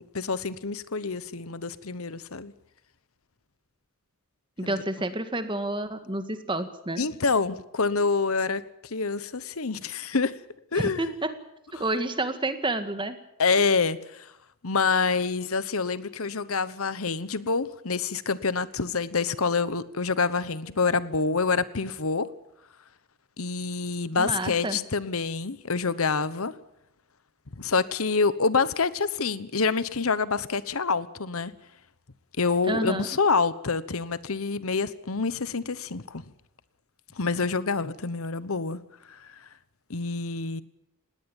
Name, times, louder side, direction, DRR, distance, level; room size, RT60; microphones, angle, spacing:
voice 1, 0.0-2.5 4.6-4.8 7.0-10.4 10.7-11.1 11.8-11.9 13.4-14.3 14.6-22.3 23.4-26.5 27.6-31.5 32.4-36.2 37.2-38.8 39.1-39.4 39.9-40.6, left 4 dB, 75° left, 1.1 m, -27 dB
voice 2, 4.6-7.0 10.8-11.3 11.8-13.2 24.2-24.8 32.7-33.1, right 2 dB, 20° right, 1.9 m, -29 dB
20.0 x 18.0 x 8.9 m
head